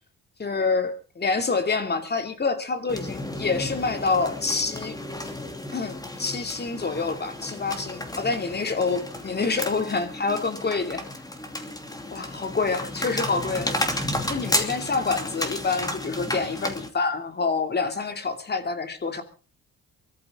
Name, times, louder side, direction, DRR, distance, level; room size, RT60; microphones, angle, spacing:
voice 1, 0.4-5.0 5.7-11.0 12.1-13.7 14.3-19.2, left 4 dB, 35° left, 8 dB, 2.6 m, -27 dB
sound 1, 2.9-16.9, left 1 dB, 10° left, 2.9 m, -32 dB
23.5 x 13.5 x 3.7 m, 0.36 s
cardioid pair, 90°, 30 cm